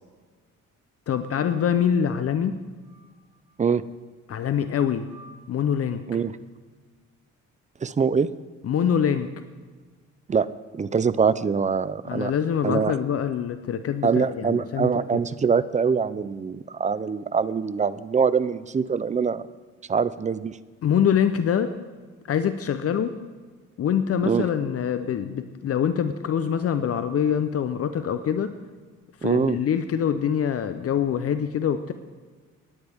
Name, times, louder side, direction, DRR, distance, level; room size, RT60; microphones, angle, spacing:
voice 1, 1.1-2.6 4.3-5.1 5.5-6.0 8.6-9.3 12.1-15.0 20.8-21.7 22.3-23.1 23.8-28.5 29.2-31.9, left 8 dB, 50° left, 10 dB, 0.7 m, -24 dB
sound 1, 1.1-1.9 2.7-3.5 4.5-6.0, right 1 dB, 70° right, 4.7 m, -52 dB
voice 2, 7.8-8.3 10.3-10.5 10.7-12.3 12.6-12.9 14.0-19.5 19.9-20.6 24.3-24.5 29.2-29.6, right 6 dB, 25° right, 16 dB, 0.5 m, -23 dB
18.5 x 9.5 x 3.5 m, 1.4 s
cardioid pair, 90°, 30 cm